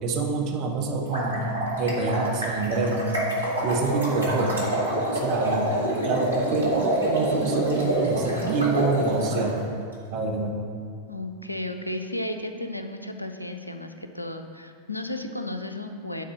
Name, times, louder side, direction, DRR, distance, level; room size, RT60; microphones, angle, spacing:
voice 1, 0.0-3.1 3.6-4.6 5.1-5.7 6.0-6.7 7.1-9.7 10.1-10.6, right 3 dB, 40° right, 1 dB, 1.2 m, -26 dB
sound 1, 1.0-9.5, right 1 dB, 80° right, 1.9 m, -27 dB
voice 2, 11.1-16.2, left 1 dB, 85° left, 7 dB, 0.5 m, -34 dB
9.3 x 4.2 x 6.6 m, 2.2 s
figure-of-eight pair, 90°, 0 cm